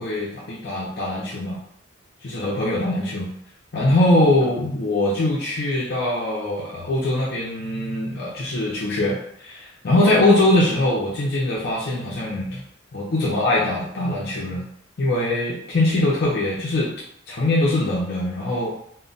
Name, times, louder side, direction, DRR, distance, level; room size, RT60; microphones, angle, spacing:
voice 1, 0.0-1.6 2.2-3.3 3.7-12.6 12.9-14.6 15.0-16.9 17.3-18.7, left 1 dB, 55° left, -5 dB, 0.5 m, -22 dB
2.1 x 2.1 x 3.8 m, 0.70 s
head